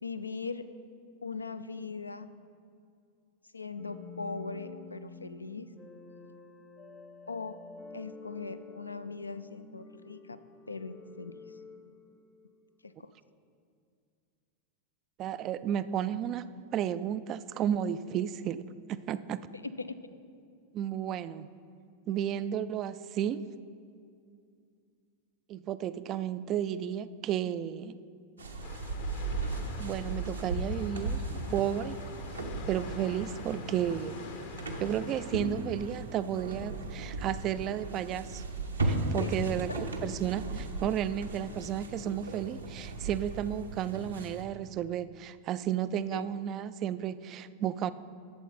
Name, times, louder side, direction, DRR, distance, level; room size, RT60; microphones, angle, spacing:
voice 1, 0.0-0.7 1.2-2.3 3.5-5.7 7.3-7.6 7.9-10.4 10.7-11.3 12.8-13.1 19.8-20.0 39.2-39.3 46.1-46.2, left 4 dB, 80° left, 12 dB, 0.4 m, -40 dB
sound 1, 3.8-12.7, left 4 dB, 15° left, 0.7 m, -49 dB
voice 2, 15.2-18.6 18.9-19.5 20.7-21.5 22.1-23.4 25.5-28.0 29.8-32.0 32.6-34.2 34.8-38.4 38.8-47.9, right 10 dB, 35° right, 14 dB, 0.3 m, -33 dB
sound 2, 28.4-44.4, right 2 dB, 75° right, 0.9 m, -36 dB
sound 3, 28.6-35.4, left 5 dB, 50° left, 0.8 m, -47 dB
11.5 x 7.3 x 4.1 m, 2.4 s
figure-of-eight pair, 90°, 0 cm